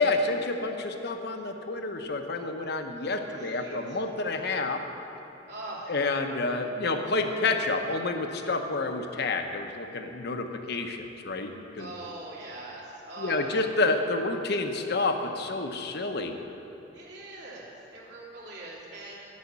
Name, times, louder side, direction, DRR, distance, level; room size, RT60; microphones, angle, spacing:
voice 1, 0.0-4.8 5.9-11.9 13.2-16.3, left 3 dB, 60° left, 5 dB, 0.9 m, -29 dB
voice 2, 3.2-4.0 5.5-5.9 11.8-13.4 16.9-19.3, right 2 dB, 65° right, -6 dB, 2.9 m, -42 dB
12.5 x 5.8 x 8.3 m, 2.9 s
head